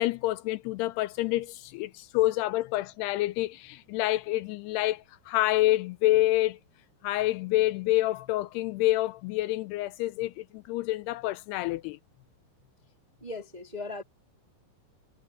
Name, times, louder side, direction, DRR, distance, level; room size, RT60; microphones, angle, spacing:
voice 1, 0.0-6.6 7.0-12.0, left 17 dB, 80° left, 2.5 m, -27 dB
voice 2, 13.2-14.0, left 3 dB, 20° right, 1.3 m, -38 dB
omnidirectional pair, 4.9 m